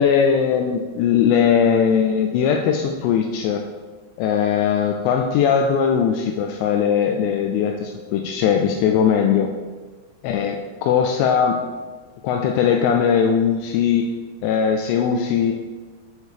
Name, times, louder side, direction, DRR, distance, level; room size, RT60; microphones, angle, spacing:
voice 1, 0.0-3.6 4.2-9.5 10.2-11.6 12.2-14.1 14.4-15.5, left 7 dB, 85° left, 3 dB, 2.7 m, -19 dB
10.5 x 3.6 x 4.9 m, 1.4 s
omnidirectional pair, 5.0 m